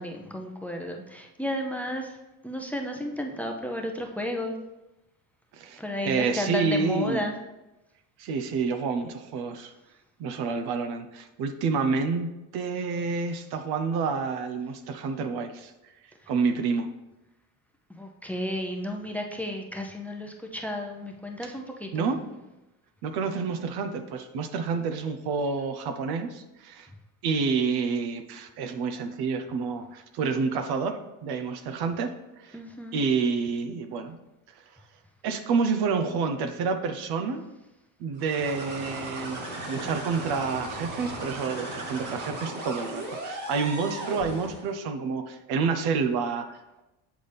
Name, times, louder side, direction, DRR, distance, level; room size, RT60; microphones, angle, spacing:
voice 1, 0.0-2.2 2.4-4.6 5.8-7.3 16.2-16.3 17.9-22.0 32.5-33.1, left 1 dB, 5° left, 2 dB, 0.6 m, -33 dB
voice 2, 6.0-7.2 8.2-9.7 10.2-15.7 16.3-16.9 21.4-21.5 21.9-22.2 23.0-26.9 27.2-32.6 32.9-34.2 35.2-37.4 38.0-39.4 39.7-46.8, right 5 dB, 70° right, 8 dB, 0.8 m, -28 dB
sound 1, 38.2-44.7, right 1 dB, 50° right, 2.2 m, -36 dB
8.3 x 4.1 x 3.4 m, 0.99 s
cardioid pair, 105°, 40 cm